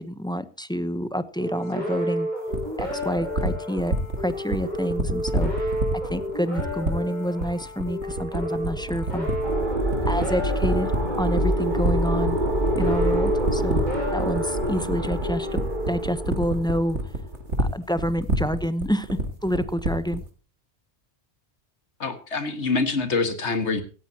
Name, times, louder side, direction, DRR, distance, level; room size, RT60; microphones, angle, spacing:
voice 1, 0.0-2.3 2.8-5.7 6.1-9.3 10.0-10.9 11.2-12.4 12.8-13.8 14.1-15.6 15.9-17.0 17.6-19.1 19.4-20.2, equal, 5° left, 13 dB, 0.7 m, -28 dB
sound 1, 1.4-16.8, equal, 40° left, 6.5 m, -31 dB
sound 2, 2.5-20.3, right 2 dB, 80° right, 2.5 m, -27 dB
sound 3, 9.4-17.3, right 1 dB, 45° right, 2.3 m, -26 dB
voice 2, 22.0-23.8, left 4 dB, 75° left, 9 dB, 2.1 m, -25 dB
17.0 x 15.0 x 2.9 m, 0.36 s
omnidirectional pair, 1.2 m